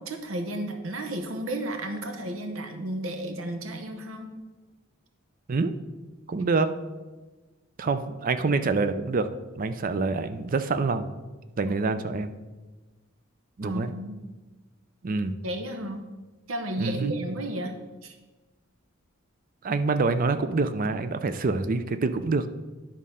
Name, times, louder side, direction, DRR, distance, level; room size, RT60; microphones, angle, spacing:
voice 1, 0.0-4.3 11.7-11.8 13.6-14.2 15.4-16.1 16.5-17.7 18.0-18.2, right 1 dB, 80° right, 5 dB, 0.8 m, -33 dB
voice 2, 6.3-6.7 7.8-9.3 9.6-11.1 11.6-12.3 13.6-13.9 15.0-15.3 16.8-17.1 19.6-22.5, right 3 dB, 45° right, 10 dB, 0.5 m, -26 dB
10.5 x 3.7 x 5.5 m, 1.2 s
head